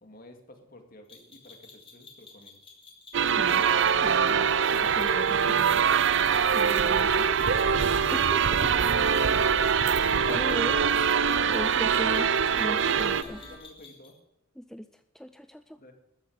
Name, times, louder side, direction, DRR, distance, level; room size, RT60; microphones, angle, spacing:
voice 1, 0.0-2.6 11.3-12.5 12.9-14.1 15.8-15.9, left 2 dB, 45° left, 5 dB, 2.3 m, -50 dB
sound 1, 1.1-14.2, left 4 dB, 25° left, 3.1 m, -51 dB
sound 2, 3.1-13.2, right 7 dB, 60° right, 0.6 m, -23 dB
voice 2, 3.3-3.7 4.0-6.0 6.5-7.3 8.1-8.7 9.8-10.8 11.5-12.3 12.5-13.4 14.6-15.8, equal, ahead, 10 dB, 0.4 m, -39 dB
sound 3, 4.8-13.6, equal, 25° right, 2.8 m, -46 dB
13.5 x 10.0 x 6.4 m, 0.92 s
head